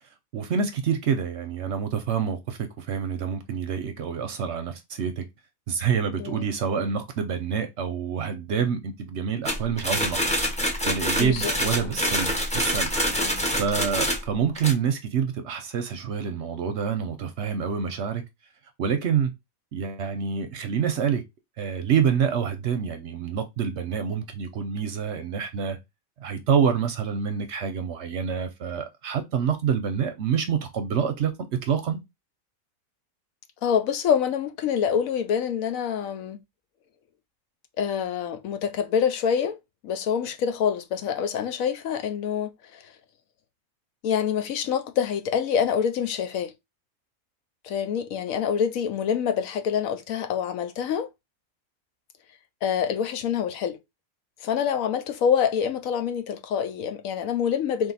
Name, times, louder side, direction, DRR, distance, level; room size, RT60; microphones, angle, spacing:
voice 1, 0.3-5.2 5.7-10.2 10.8-13.3 13.6-18.2 18.8-19.3 19.7-21.2 21.6-25.8 26.2-31.3 31.6-32.0, right 7 dB, 65° right, 0.8 m, -27 dB
sound 1, 9.4-14.7, equal, 10° left, 0.5 m, -26 dB
voice 2, 11.2-12.0 13.2-13.4 33.6-36.4 37.8-39.6 39.8-42.8 44.0-46.5 47.6-51.1 52.6-53.8 54.4-57.9, left 8 dB, 75° left, 1.0 m, -26 dB
3.5 x 2.6 x 3.9 m
omnidirectional pair, 1.5 m